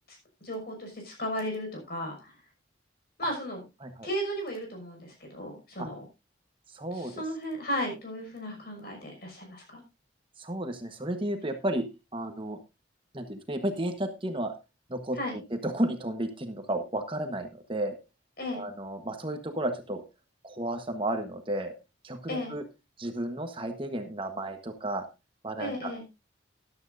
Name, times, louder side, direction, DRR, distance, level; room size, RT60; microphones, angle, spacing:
voice 1, 0.1-2.3 3.2-3.6 4.0-6.0 6.9-9.8 15.1-15.3 18.4-18.6 22.3-22.6 25.6-26.0, equal, 50° left, 2 dB, 6.0 m, -35 dB
voice 2, 6.7-7.1 10.4-12.6 13.1-14.5 14.9-18.0 18.5-20.0 20.4-21.7 22.0-22.6 23.0-25.0 25.4-25.9, right 1 dB, 25° right, 6 dB, 1.2 m, -33 dB
14.0 x 12.0 x 2.6 m, 0.26 s
head